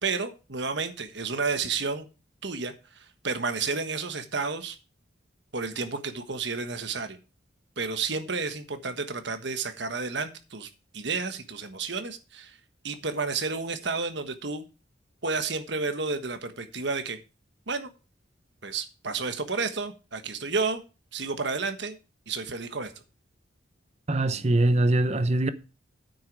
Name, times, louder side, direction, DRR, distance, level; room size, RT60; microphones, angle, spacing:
voice 1, 0.0-2.1 2.4-4.8 5.5-7.2 7.8-12.6 12.8-14.7 15.2-17.2 17.7-17.9 18.6-20.8 21.1-22.0 22.3-22.9, right 4 dB, 60° right, 1.4 m, -31 dB
voice 2, 24.1-25.5, right 2 dB, 35° right, 0.8 m, -22 dB
9.4 x 7.9 x 4.7 m
head